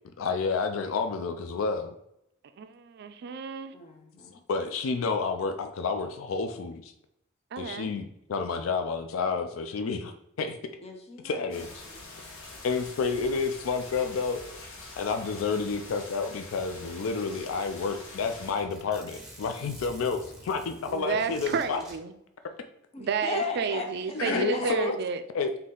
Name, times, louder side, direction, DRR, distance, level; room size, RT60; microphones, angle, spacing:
voice 1, 0.2-1.9 4.3-6.9 7.6-10.1 10.4-10.6 11.2-11.8 12.6-14.4 14.8-21.8 24.1-25.0 25.3-25.5, left 4 dB, 90° left, 7 dB, 0.4 m, -30 dB
voice 2, 2.6-3.7 7.5-7.9 20.9-22.1 23.0-25.2, right 5 dB, 55° right, 10 dB, 0.4 m, -31 dB
voice 3, 3.7-4.4 10.8-11.4 11.9-12.0 22.9-23.8 24.3-24.9, left 3 dB, 30° left, 3 dB, 0.6 m, -36 dB
sound 1, 11.5-18.5, left 2 dB, 70° left, 1.0 m, -45 dB
Zipper (clothing), 17.3-21.9, right 1 dB, 5° right, 1.1 m, -49 dB
4.1 x 2.8 x 3.7 m, 0.79 s
head